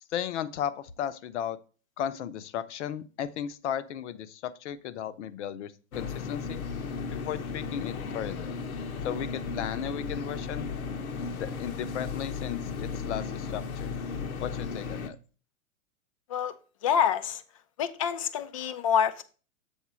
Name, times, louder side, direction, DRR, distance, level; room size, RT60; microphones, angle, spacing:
voice 1, 0.1-1.6 2.0-6.6 7.1-8.5 9.0-10.7 11.3-14.0 14.4-15.2, left 9 dB, 55° left, 14 dB, 0.8 m, -35 dB
sound 1, 5.9-15.1, left 5 dB, 80° left, 1.2 m, -35 dB
voice 2, 16.8-17.4 17.8-19.2, left 8 dB, 25° left, 13 dB, 0.3 m, -26 dB
7.2 x 3.9 x 6.1 m, 0.37 s
hypercardioid pair, 140°, 42 cm